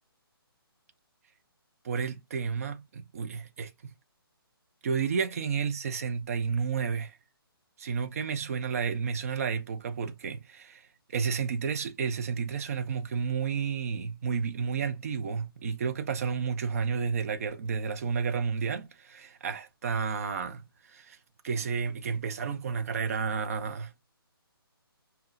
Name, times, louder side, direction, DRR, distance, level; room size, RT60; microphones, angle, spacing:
voice 1, 1.8-3.7 4.8-7.2 7.8-10.8 11.1-20.6 20.9-21.2 21.4-23.9, right 6 dB, 35° right, 0.6 m, -31 dB
5.4 x 2.3 x 2.5 m
figure-of-eight pair, 140°, 13 cm